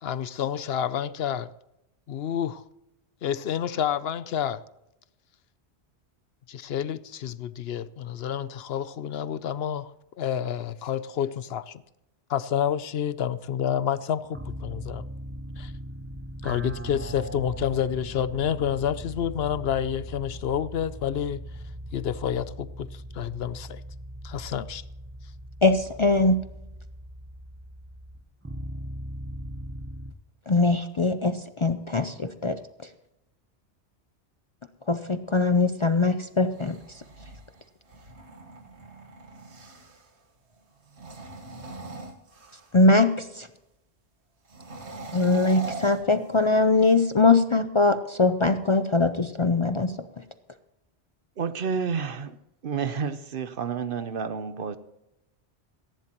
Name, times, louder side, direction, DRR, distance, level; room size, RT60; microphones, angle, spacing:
voice 1, 0.0-1.5 2.1-2.6 3.2-4.6 6.5-11.8 12.3-15.0 15.6-15.7 16.4-21.4 21.9-23.8 24.2-24.8, left 9 dB, 70° left, 0.8 m, -29 dB
sound 1, 14.3-30.1, right 1 dB, 15° right, 0.6 m, -39 dB
voice 2, 25.6-26.4 30.5-32.6 34.9-37.0 42.7-43.5 45.1-50.0, left 3 dB, 35° left, 0.5 m, -22 dB
sound 2, 36.3-40.1 40.8-42.9 44.5-46.8, right 2 dB, 85° right, 1.8 m, -41 dB
voice 3, 51.4-52.4 52.6-54.8, right 6 dB, 60° right, 0.9 m, -30 dB
18.5 x 14.5 x 3.0 m
omnidirectional pair, 1.1 m